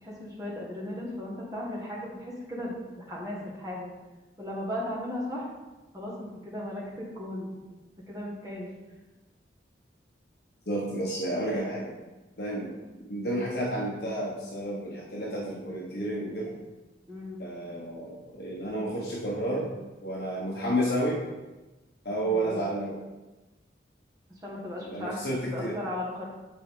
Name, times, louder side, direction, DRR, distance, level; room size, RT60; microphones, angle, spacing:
voice 1, 0.0-3.9 4.4-5.5 5.9-7.6 8.1-8.7 17.1-17.4 22.3-22.7 24.3-26.2, left 1 dB, 20° right, -5 dB, 1.7 m, -36 dB
voice 2, 10.7-11.9 12.4-12.7 13.1-16.5 17.4-19.7 20.0-21.2 22.0-23.0 24.8-25.7, right 1 dB, 60° left, -4 dB, 1.2 m, -31 dB
8.2 x 4.6 x 3.8 m, 1.1 s
head